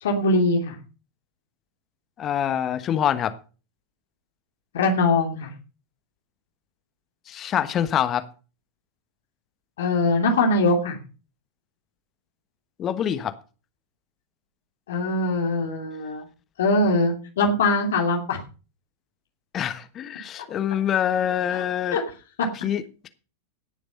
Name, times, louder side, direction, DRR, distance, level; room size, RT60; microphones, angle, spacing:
voice 1, 0.0-0.7 4.7-5.5 9.8-11.0 14.9-16.2 16.6-18.4 21.5-21.6 21.9-22.0, left 2 dB, 60° left, 2 dB, 2.8 m, -22 dB
voice 2, 2.2-3.3 7.3-8.2 12.8-13.3 19.5-22.0 22.5-23.1, left 10 dB, 30° left, 11 dB, 1.3 m, -25 dB
17.5 x 6.9 x 5.5 m, 0.35 s
figure-of-eight pair, 90°, 0 cm